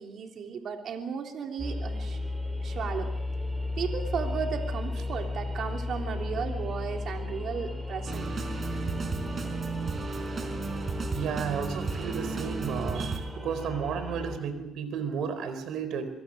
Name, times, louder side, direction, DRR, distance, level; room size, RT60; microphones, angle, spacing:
voice 1, 0.0-2.2 2.6-3.1 3.8-8.3, right 6 dB, 65° right, 3 dB, 3.2 m, -35 dB
sound 1, 1.6-14.4, left 2 dB, 15° right, 4.9 m, -35 dB
sound 2, 8.1-13.2, right 4 dB, 40° right, 4.5 m, -34 dB
voice 2, 11.1-16.1, right 7 dB, 80° right, 11 dB, 4.2 m, -33 dB
26.0 x 21.5 x 6.6 m, 0.87 s
cardioid pair, 90°, 0 cm